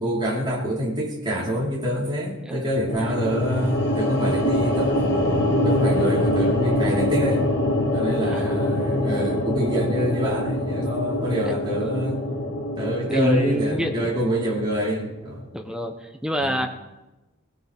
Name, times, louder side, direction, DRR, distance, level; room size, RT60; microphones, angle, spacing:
voice 1, 0.0-7.4 7.9-12.2 12.8-15.5 16.4-16.6, equal, 20° right, -6 dB, 4.6 m, -26 dB
sound 1, 2.9-15.1, left 1 dB, 50° left, 2.3 m, -24 dB
voice 2, 8.3-8.6 11.4-11.5 13.1-14.1 15.5-16.7, equal, 5° right, 4 dB, 1.0 m, -27 dB
19.5 x 17.0 x 3.7 m, 1.0 s
head